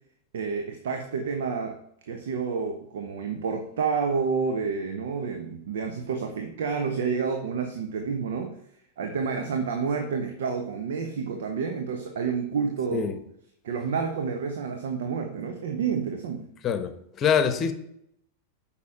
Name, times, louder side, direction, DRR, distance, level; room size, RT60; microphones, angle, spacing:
voice 1, 0.3-8.6 9.0-13.1 13.6-16.4, right 5 dB, 60° right, 5 dB, 0.9 m, -29 dB
voice 2, 17.2-17.7, left 7 dB, 30° left, 9 dB, 1.0 m, -24 dB
8.4 x 5.9 x 4.8 m, 0.72 s
figure-of-eight pair, 90°, 0 cm